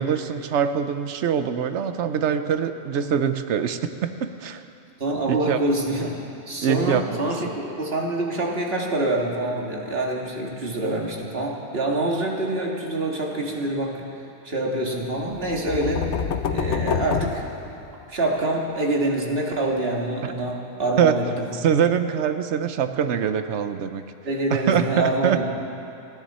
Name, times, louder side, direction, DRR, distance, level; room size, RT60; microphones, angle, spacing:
voice 1, 0.0-4.6 5.2-5.6 6.6-7.2 20.2-20.3 21.0-21.1 21.6-24.0 24.5-25.5, right 8 dB, 85° right, 9 dB, 1.0 m, -23 dB
voice 2, 5.0-6.2 6.5-14.1 14.4-16.2 16.5-17.4 18.1-21.5 24.2-25.5, right 2 dB, 60° right, -1 dB, 2.1 m, -26 dB
sound 1, 15.3-18.2, left 6 dB, 90° left, 1.0 m, -27 dB
30.0 x 10.5 x 4.2 m, 2.7 s
omnidirectional pair, 1.1 m